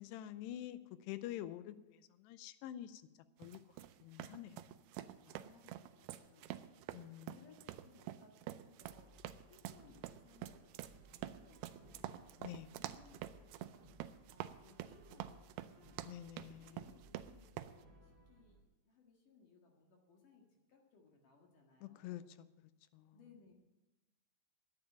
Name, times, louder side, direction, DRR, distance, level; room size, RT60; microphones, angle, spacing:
voice 1, 0.0-3.0 3.4-3.6 4.0-4.8 5.2-5.3 6.9-7.5 12.4-12.7 16.0-17.0 21.8-23.2, left 12 dB, 85° left, 13 dB, 2.7 m, -48 dB
sound 1, 3.4-17.8, right 13 dB, 80° right, 2.5 m, -48 dB
voice 2, 5.3-6.6 7.3-12.3 12.7-13.8 14.3-16.0 16.4-22.2 23.1-23.5, left 5 dB, 55° left, 0 dB, 3.0 m, -65 dB
Brass instrument, 8.8-18.6, equal, 25° right, 2.4 m, -64 dB
11.0 x 9.2 x 9.5 m, 1.0 s
omnidirectional pair, 4.9 m